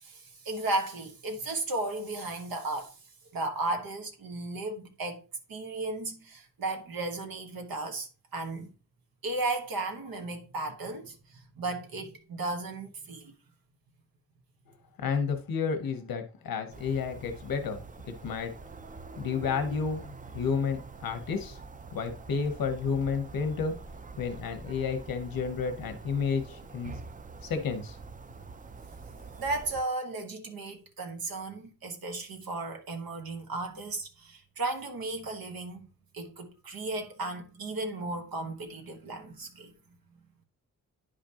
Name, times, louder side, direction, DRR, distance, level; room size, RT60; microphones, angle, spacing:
voice 1, 0.0-3.0 3.3-5.2 5.5-8.7 9.2-13.3 29.4-35.9 36.1-39.7, right 2 dB, 85° right, 1.3 m, -35 dB
voice 2, 15.0-18.5 19.2-20.1 20.3-21.6 21.9-23.7 24.2-27.0 27.4-28.0, left 5 dB, 85° left, 0.9 m, -31 dB
sound 1, 16.7-29.8, right 4 dB, 25° right, 0.4 m, -45 dB
9.8 x 5.1 x 2.8 m
wide cardioid pair, 130°, 34 cm